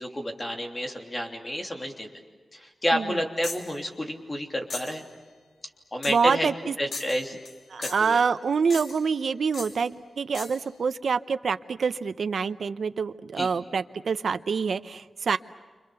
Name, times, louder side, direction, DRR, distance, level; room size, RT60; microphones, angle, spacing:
voice 1, 0.0-2.1 2.5-5.0 5.9-6.5 6.8-7.3 7.8-8.2 13.4-13.5, equal, 25° left, 2 dB, 3.1 m, -30 dB
sound 1, 3.4-3.7 4.7-5.0 6.0-6.3 6.9-7.6 7.8-8.1 8.7-9.1 9.5-9.8 10.3-10.6, left 3 dB, 80° left, 3.2 m, -38 dB
voice 2, 6.1-6.8 7.7-15.4, right 5 dB, 75° right, 11 dB, 0.8 m, -26 dB
29.5 x 26.5 x 6.9 m, 1.4 s
wide cardioid pair, 145°, 0 cm